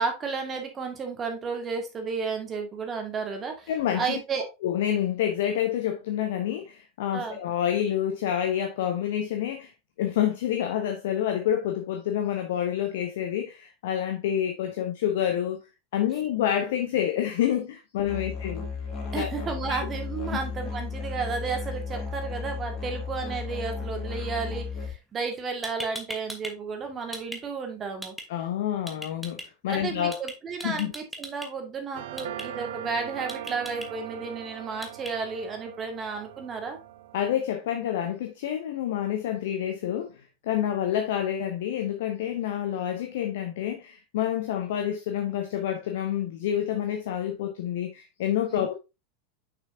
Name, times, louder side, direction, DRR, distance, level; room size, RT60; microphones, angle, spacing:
voice 1, 0.0-4.5 7.1-7.4 19.1-28.2 29.6-36.8 48.5-48.6, right 5 dB, 25° right, 1.9 m, -32 dB
voice 2, 3.7-4.2 4.6-9.7 10.0-15.6 15.9-18.7 19.2-19.3 19.7-19.8 28.3-30.2 30.6-30.9 37.1-48.7, left 10 dB, 55° left, 0.8 m, -28 dB
Musical instrument, 18.1-24.9, left 5 dB, 30° left, 2.5 m, -34 dB
sound 1, 25.3-25.4 25.6-26.5 26.8-27.4 28.0-28.2 28.9-29.4 30.1-30.3 30.6-31.5 32.2-32.4 33.3-33.9 34.8-35.1, equal, ahead, 1.3 m, -37 dB
sound 2, 31.9-37.3, right 12 dB, 55° right, 0.6 m, -40 dB
6.4 x 6.1 x 2.7 m
figure-of-eight pair, 85°, 0 cm